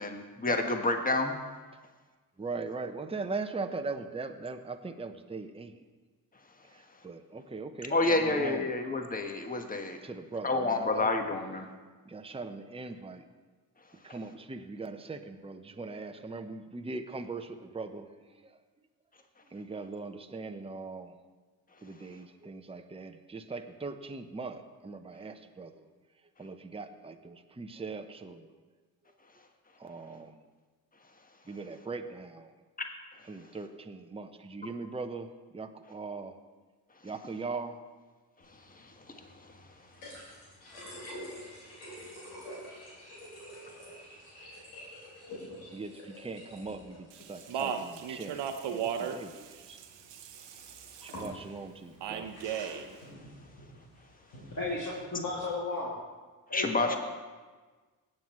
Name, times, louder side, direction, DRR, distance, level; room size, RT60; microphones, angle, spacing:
voice 1, 0.0-1.3 7.9-10.0 10.4-11.7 56.5-57.0, left 2 dB, 20° left, 5 dB, 1.4 m, -29 dB
voice 2, 2.4-5.7 7.0-8.7 10.0-11.1 12.1-13.2 14.0-18.1 19.5-21.1 21.8-25.7 26.4-28.5 29.8-30.4 31.5-32.5 33.3-35.3 35.5-36.4 37.0-37.8 45.7-49.8 51.0-52.3, right 3 dB, 10° right, 7 dB, 0.8 m, -40 dB
sound 1, 38.4-55.4, equal, 90° left, 3.3 m, -49 dB
Speech, 47.1-51.3 52.0-52.9, right 8 dB, 65° right, 1.0 m, -36 dB
voice 3, 54.6-56.0 56.5-57.0, left 3 dB, 40° left, -6 dB, 2.5 m, -34 dB
18.0 x 7.6 x 3.1 m, 1.4 s
hypercardioid pair, 40°, 46 cm